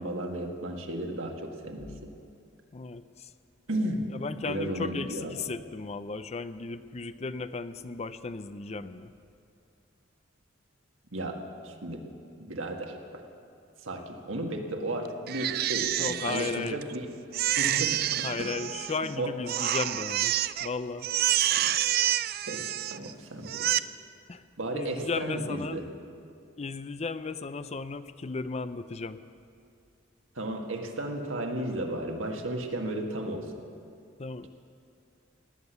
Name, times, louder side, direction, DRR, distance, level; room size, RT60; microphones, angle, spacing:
voice 1, 0.0-2.1 3.7-4.1 4.4-5.4 11.1-12.1 12.4-13.2 13.8-17.1 17.6-18.5 19.2-19.3 21.6-21.7 22.5-23.8 24.6-25.9 30.3-33.5, right 1 dB, 90° right, 2 dB, 1.8 m, -34 dB
voice 2, 2.7-3.3 4.1-9.1 16.0-16.8 18.2-21.1 24.3-24.4 24.7-25.8 26.6-29.2 34.2-34.5, left 4 dB, 35° left, 12 dB, 0.5 m, -35 dB
Crying sobbing, 15.3-17.0 17.3-19.1 19.5-20.7 21.0-23.1 23.4-23.8, right 12 dB, 50° right, 0.4 m, -28 dB
18.0 x 10.0 x 8.0 m, 2.4 s
head